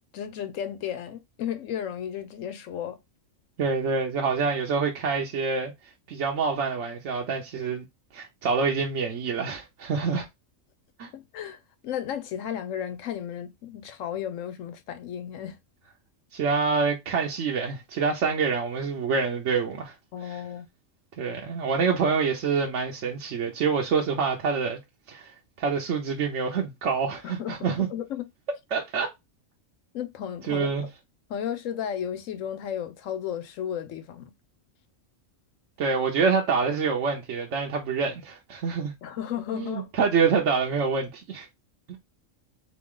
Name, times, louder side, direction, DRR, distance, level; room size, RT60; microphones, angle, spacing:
voice 1, 0.1-3.0 11.1-15.6 20.1-20.7 27.2-28.2 29.9-30.7 31.3-34.3 39.0-39.9, left 9 dB, 80° left, 1.1 m, -34 dB
voice 2, 3.6-5.7 6.1-7.9 8.1-10.2 11.0-11.1 16.3-19.9 20.2-20.4 21.2-24.8 25.1-25.3 25.6-27.9 28.7-29.1 30.5-30.9 35.8-38.9 39.5-41.5 41.9-42.0, right 5 dB, 65° right, 1.0 m, -26 dB
3.9 x 3.1 x 3.7 m
omnidirectional pair, 1.3 m